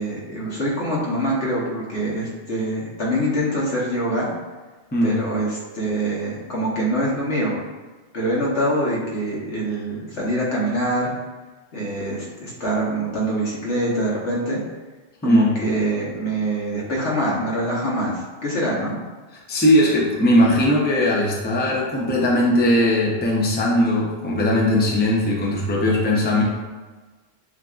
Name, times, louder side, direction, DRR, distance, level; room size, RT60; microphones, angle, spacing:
voice 1, 0.0-4.3 5.0-7.6 8.1-11.1 11.7-14.6 15.2-18.9, right 1 dB, 75° left, -5 dB, 1.4 m, -24 dB
voice 2, 4.9-5.2 15.2-15.6 19.5-26.4, left 1 dB, 10° left, -3 dB, 0.5 m, -19 dB
7.2 x 2.6 x 2.4 m, 1.3 s
omnidirectional pair, 1.2 m